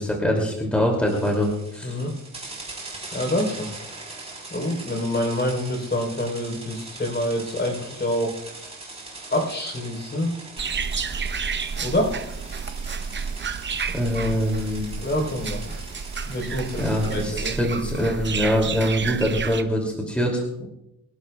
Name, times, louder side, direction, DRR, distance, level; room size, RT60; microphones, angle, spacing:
voice 1, 0.0-2.0 13.9-14.8 16.8-20.4, equal, 5° left, 0 dB, 2.5 m, -24 dB
sound 1, 1.1-17.3, right 3 dB, 20° right, 3.4 m, -41 dB
voice 2, 3.1-3.7 4.5-8.3 9.3-10.3 11.8-12.1 15.0-15.6 16.3-17.6, left 1 dB, 30° left, 1 dB, 3.8 m, -26 dB
sound 2, 10.6-19.6, right 5 dB, 35° right, 0.8 m, -31 dB
25.5 x 11.5 x 2.3 m, 0.85 s
cardioid pair, 125°, 34 cm